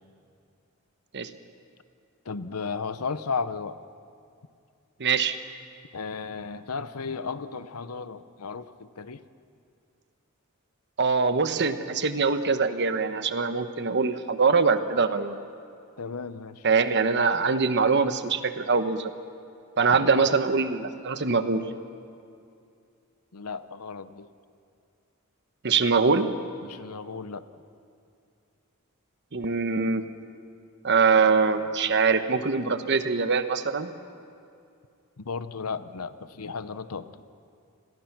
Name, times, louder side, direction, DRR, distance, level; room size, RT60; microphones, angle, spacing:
voice 1, 2.2-3.8 5.9-9.2 16.0-16.7 19.9-20.3 23.3-24.3 26.6-27.5 35.2-37.2, left 5 dB, 80° left, 13 dB, 0.8 m, -34 dB
voice 2, 5.0-5.4 11.0-15.4 16.6-19.1 19.8-21.6 25.6-26.3 29.3-30.0 30.8-33.9, right 4 dB, 50° right, 10 dB, 1.1 m, -23 dB
28.5 x 21.5 x 6.0 m, 2.4 s
head